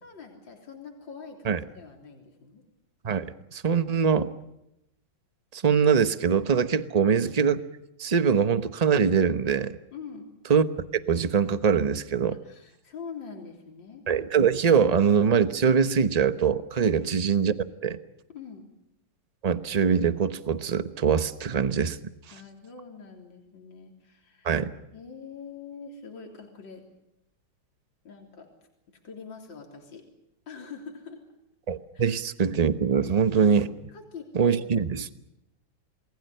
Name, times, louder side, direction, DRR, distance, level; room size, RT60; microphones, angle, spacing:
voice 1, 0.0-2.6 9.9-10.3 12.4-14.1 16.8-17.1 18.3-18.7 22.3-24.6 24.9-26.8 28.0-28.5 29.0-30.1 30.5-31.3 31.9-32.1 33.0-33.1 33.9-34.6, left 5 dB, 65° left, 2 dB, 4.2 m, -44 dB
voice 2, 3.0-4.3 5.5-7.6 8.0-9.8 10.5-10.6 11.1-12.4 14.1-18.0 19.4-22.0 24.4-24.7 31.7-33.8 34.3-35.2, right 6 dB, 30° right, 12 dB, 0.7 m, -23 dB
28.5 x 20.5 x 6.8 m, 0.85 s
omnidirectional pair, 2.2 m